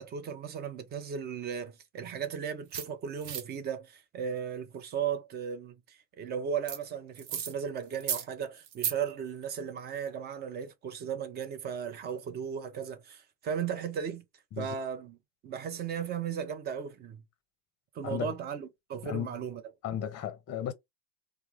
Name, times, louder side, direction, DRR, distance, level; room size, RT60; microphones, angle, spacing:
voice 1, 0.0-14.2 14.6-15.2 15.4-17.2 17.9-19.6, right 7 dB, 20° right, 0.4 m, -36 dB
sound 1, 2.7-2.8 3.2-3.4 6.7-6.8 7.2-7.5 7.9-8.2 8.6-8.9, right 9 dB, 75° right, 0.8 m, -33 dB
voice 2, 18.0-18.3 19.0-19.3 19.8-20.7, left 9 dB, 30° left, 0.7 m, -34 dB
2.2 x 2.0 x 3.1 m
hypercardioid pair, 90°, 49 cm